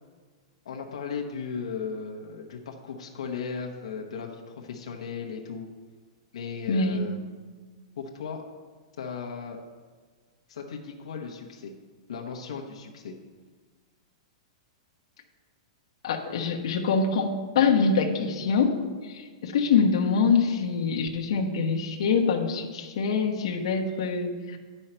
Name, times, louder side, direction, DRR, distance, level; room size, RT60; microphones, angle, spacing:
voice 1, 0.6-5.7 6.3-7.2 8.0-8.4 9.0-9.6 10.5-11.7 12.1-13.1, left 5 dB, 90° left, 1 dB, 1.0 m, -36 dB
voice 2, 6.7-7.0 16.0-18.8 19.0-24.6, left 5 dB, 65° left, 0 dB, 1.1 m, -25 dB
10.0 x 5.5 x 4.4 m, 1.5 s
supercardioid pair, 170°, 3 cm